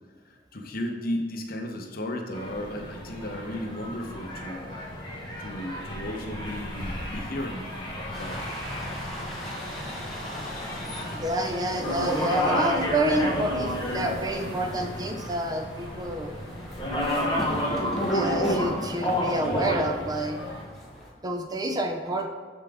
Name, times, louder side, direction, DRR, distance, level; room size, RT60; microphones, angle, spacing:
voice 1, 0.2-4.6 5.4-7.6 8.1-8.4, left 1 dB, 55° left, 3 dB, 0.9 m, -34 dB
sound 1, 2.3-20.6, equal, 25° left, 1.3 m, -31 dB
sound 2, 8.1-21.1, equal, ahead, 1.2 m, -39 dB
voice 2, 11.0-16.3 18.1-20.4 21.2-22.3, right 1 dB, 20° right, 5 dB, 0.5 m, -28 dB
7.0 x 5.6 x 3.5 m, 1.5 s
head